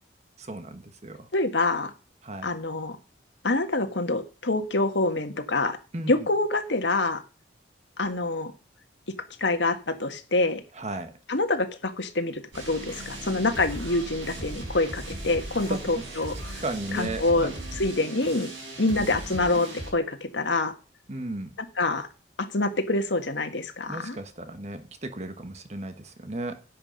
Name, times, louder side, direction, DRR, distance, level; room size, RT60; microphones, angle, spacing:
voice 1, 0.4-1.3 2.2-2.5 5.9-6.3 10.7-11.2 15.7-16.2 16.6-17.6 19.0-19.1 21.1-21.6 23.9-26.6, right 2 dB, 35° right, 1.2 m, -35 dB
voice 2, 1.3-1.9 2.4-3.0 3.4-5.8 6.1-7.2 8.0-8.5 9.4-10.6 11.3-16.6 16.9-18.5 18.8-20.7 21.8-22.1 22.5-24.2, left 2 dB, 75° left, 1.7 m, -26 dB
sound 1, 12.5-19.9, right 1 dB, 85° right, 5.4 m, -38 dB
10.5 x 7.8 x 5.2 m
head